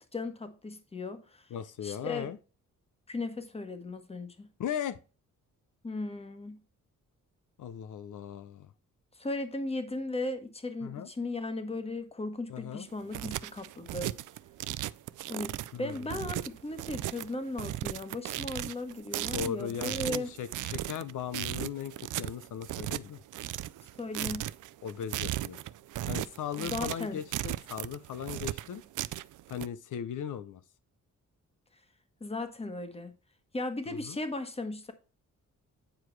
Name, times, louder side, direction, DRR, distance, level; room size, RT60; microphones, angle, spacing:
voice 1, 0.0-1.4 1.8-2.3 3.1-4.5 5.8-6.6 9.2-14.1 15.3-20.3 23.9-24.5 26.6-27.2 32.2-33.1 33.5-34.9, left 2 dB, 20° left, 1.3 m, -37 dB
voice 2, 1.5-2.4 4.6-5.0 7.6-8.7 10.8-11.1 12.5-12.9 15.7-16.2 19.3-23.2 24.8-25.6 26.1-28.8 29.5-30.6 33.9-34.2, left 9 dB, 80° left, 0.7 m, -38 dB
sound 1, 12.9-29.7, right 14 dB, 80° right, 0.5 m, -36 dB
9.2 x 4.8 x 4.6 m
cardioid pair, 115°, 30 cm